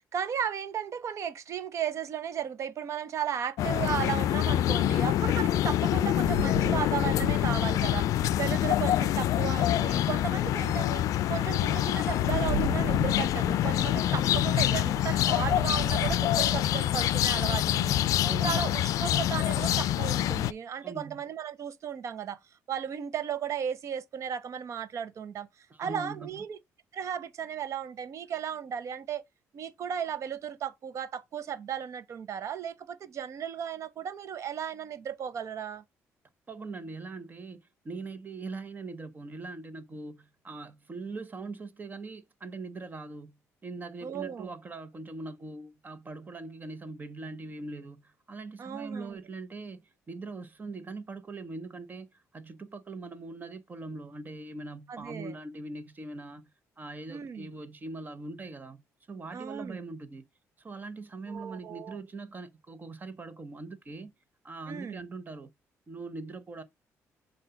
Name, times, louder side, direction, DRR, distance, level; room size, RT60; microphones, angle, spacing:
voice 1, 0.1-22.4 22.7-26.6 26.9-29.2 29.5-35.8 44.0-44.5 48.6-49.2 54.9-55.3 57.1-57.5 59.3-59.8 61.3-62.0 64.7-65.0, right 8 dB, 60° right, 1.0 m, -35 dB
sound 1, 3.6-20.5, left 12 dB, 80° left, 0.4 m, -26 dB
Rain, 6.0-9.5 10.1-10.2 10.7-17.2, right 11 dB, 90° right, 0.4 m, -40 dB
voice 2, 18.2-18.8 20.8-21.2 25.7-26.4 36.5-56.5 56.8-58.8 59.1-60.2 60.6-64.1 64.4-65.5 65.9-66.6, right 3 dB, 30° right, 1.2 m, -41 dB
7.5 x 2.7 x 5.7 m
cardioid pair, 95°, 6 cm